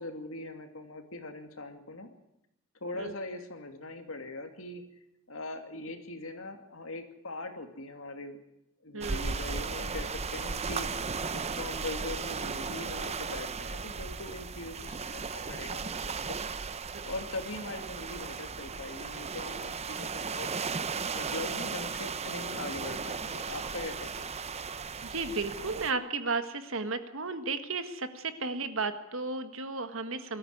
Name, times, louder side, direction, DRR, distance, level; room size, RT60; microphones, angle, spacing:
voice 1, 0.0-2.1 2.8-4.8 5.3-8.4 8.8-15.8 16.3-16.4 17.1-24.3, left 2 dB, 85° left, 6 dB, 2.6 m, -41 dB
sound 1, 9.0-25.9, right 5 dB, 30° right, 0.7 m, -36 dB
voice 2, 25.0-30.4, right 4 dB, 70° right, 9 dB, 1.7 m, -34 dB
21.5 x 13.5 x 9.5 m, 0.86 s
head